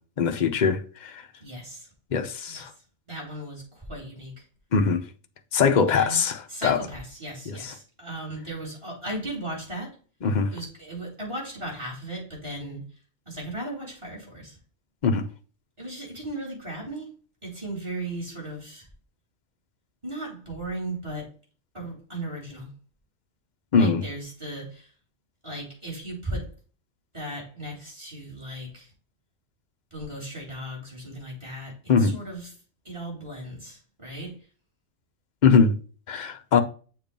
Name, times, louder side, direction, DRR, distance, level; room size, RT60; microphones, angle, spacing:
voice 1, 0.2-1.2 2.1-2.7 4.7-5.0 5.5-6.4 6.6-6.8 7.5-7.7 10.2-10.5 15.0-15.3 23.7-24.0 31.9-32.2 35.4-35.8 36.1-36.6, left 5 dB, 45° left, 0.7 m, -21 dB
voice 2, 1.4-1.9 2.5-2.7 3.1-4.4 5.9-6.2 6.5-10.0 10.5-12.8 13.2-14.6 15.8-17.1 17.4-18.9 20.0-21.3 21.7-22.7 23.8-24.9 25.4-26.5 27.1-28.9 29.9-32.6 32.8-34.4, right 1 dB, 20° right, 3.3 m, -36 dB
7.0 x 3.0 x 5.2 m
omnidirectional pair, 1.3 m